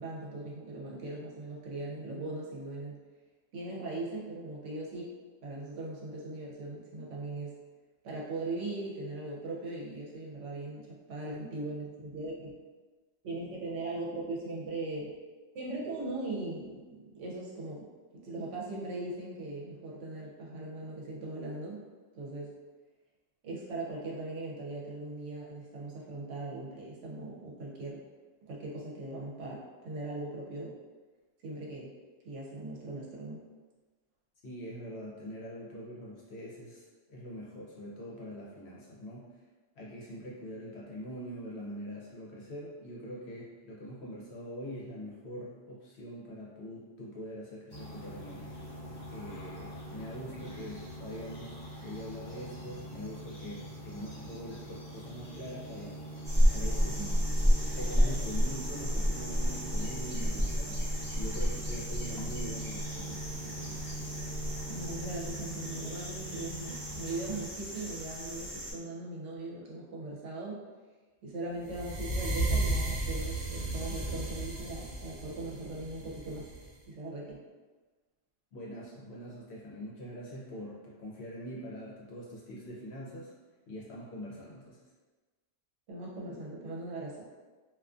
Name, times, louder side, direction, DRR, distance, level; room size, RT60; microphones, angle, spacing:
voice 1, 0.0-3.0 3.5-5.1 5.4-7.6 8.0-12.5 13.2-15.1 15.5-17.9 18.1-21.8 22.1-22.5 23.4-28.0 28.4-30.7 31.4-31.9 32.2-33.4 57.0-57.1 60.1-60.2 64.6-70.6 71.2-76.5 76.9-77.4 85.9-87.3, right 2 dB, 75° right, -4 dB, 0.9 m, -39 dB
voice 2, 34.4-39.3 39.8-48.5 49.1-56.0 56.5-57.1 57.7-63.8 78.5-83.3 83.7-84.8, equal, 65° left, -5 dB, 0.8 m, -43 dB
sound 1, 47.7-67.5, right 1 dB, 35° left, 1.2 m, -43 dB
sound 2, 56.2-68.7, equal, ahead, 0.5 m, -31 dB
sound 3, 71.7-76.7, right 2 dB, 60° right, 0.5 m, -33 dB
2.4 x 2.4 x 2.4 m, 1.3 s
omnidirectional pair, 1.3 m